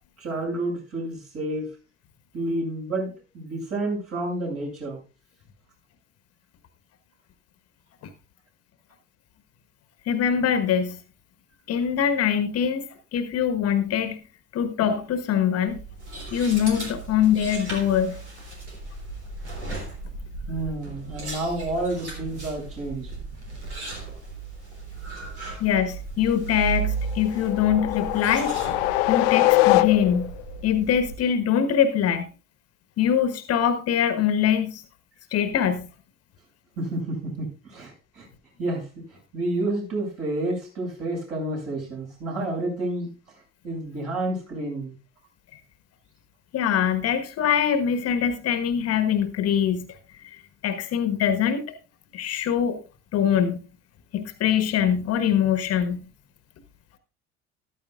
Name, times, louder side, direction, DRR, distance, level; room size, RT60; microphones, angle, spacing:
voice 1, 0.2-1.7 2.3-5.0 20.5-23.1 36.8-38.3 38.6-43.1 43.6-44.9, right 2 dB, 45° right, -2 dB, 7.3 m, -30 dB
voice 2, 10.1-11.0 11.7-12.9 13.1-14.2 14.5-15.8 16.3-18.2 25.6-28.6 29.1-30.3 30.6-32.3 33.0-34.8 35.3-35.9 46.5-49.9 50.2-51.7 52.1-52.8 53.1-53.6 54.1-56.0, left 8 dB, 45° left, 11 dB, 1.3 m, -23 dB
sound 1, 15.7-31.2, right 4 dB, 80° right, 3.1 m, -36 dB
sound 2, 27.1-30.4, left 19 dB, 60° left, 0.4 m, -22 dB
14.0 x 13.0 x 2.4 m, 0.31 s
figure-of-eight pair, 55°, 33 cm